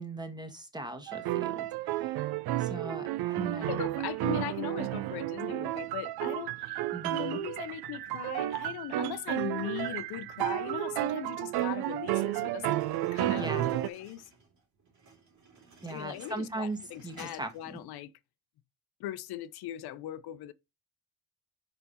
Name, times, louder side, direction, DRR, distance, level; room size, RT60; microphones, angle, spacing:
voice 1, 0.0-2.2 2.6-3.8 6.9-7.4 13.3-13.6 15.8-16.8 17.0-17.8, right 2 dB, 10° right, 1.4 m, -39 dB
sound 1, 1.1-13.9, right 14 dB, 80° right, 0.5 m, -32 dB
voice 2, 3.6-6.8 7.1-14.3 15.9-18.1 19.0-20.5, left 12 dB, 85° left, 0.6 m, -39 dB
sound 2, 12.8-17.8, right 3 dB, 50° right, 2.6 m, -56 dB
5.3 x 4.5 x 4.0 m
cardioid pair, 105°, 37 cm